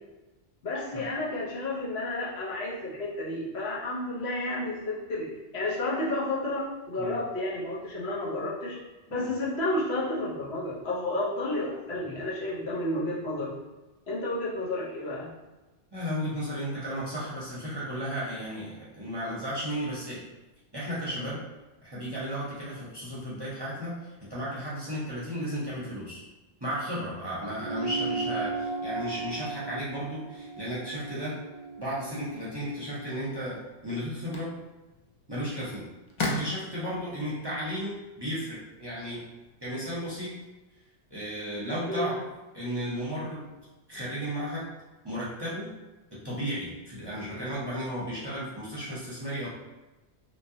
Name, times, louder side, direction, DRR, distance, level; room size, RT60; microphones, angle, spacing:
voice 1, 0.6-8.8 9.1-13.5 14.1-15.3 41.9-42.1, left 1 dB, 70° left, -6 dB, 1.1 m, -31 dB
voice 2, 15.9-20.2 20.7-21.4 21.8-26.2 26.6-31.4 31.8-34.5 35.3-35.8 36.2-39.2 39.6-40.3 41.1-42.2 42.5-43.5 43.9-44.7 45.0-45.7 46.1-49.5, equal, 25° right, -8 dB, 0.7 m, -34 dB
sound 1, 27.6-32.4, right 3 dB, 70° right, 0.8 m, -35 dB
sound 2, 33.3-39.5, left 2 dB, 50° left, 0.3 m, -39 dB
3.0 x 2.8 x 2.7 m, 1.1 s
omnidirectional pair, 1.1 m